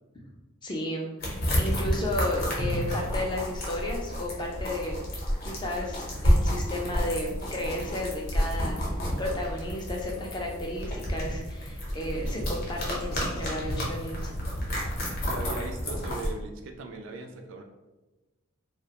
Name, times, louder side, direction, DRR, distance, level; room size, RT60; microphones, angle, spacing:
voice 1, 0.6-1.1 1.6-4.9 5.4-14.3, left 1 dB, 20° left, -1 dB, 0.3 m, -33 dB
sound 1, 1.2-16.3, equal, 45° left, 0.7 m, -30 dB
voice 2, 15.3-17.6, right 3 dB, 65° right, 4 dB, 0.3 m, -39 dB
2.3 x 2.1 x 2.8 m, 1.1 s
head